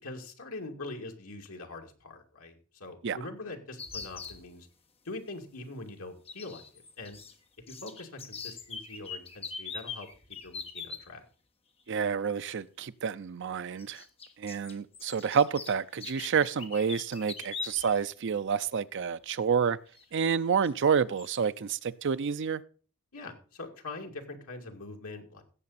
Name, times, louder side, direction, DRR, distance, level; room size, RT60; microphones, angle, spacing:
voice 1, 0.0-4.7 5.0-7.2 7.7-10.1 10.4-11.2 23.1-25.4, left 2 dB, 70° left, 2.4 m, -43 dB
sound 1, 3.8-4.4 6.3-7.3 7.6-11.0 12.4-12.6 13.8-18.0 18.4-18.5 19.9-20.0 20.6-20.9 21.2-21.4, left 5 dB, 25° left, 1.3 m, -42 dB
voice 2, 11.9-14.0 14.4-19.8 20.1-22.6, right 6 dB, 55° right, 0.5 m, -29 dB
16.5 x 7.6 x 4.1 m
head